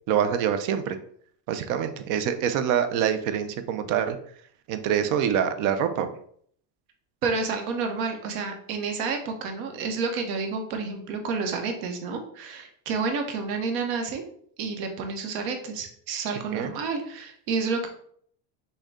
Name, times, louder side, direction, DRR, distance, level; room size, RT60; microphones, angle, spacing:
voice 1, 0.1-1.0 1.5-4.2 4.7-6.1 16.5-16.7, right 8 dB, 45° right, 9 dB, 0.5 m, -25 dB
voice 2, 7.2-14.2 14.6-17.9, right 4 dB, 70° right, 4 dB, 1.1 m, -30 dB
6.4 x 2.3 x 3.6 m, 0.62 s
cardioid pair, 175°, 44 cm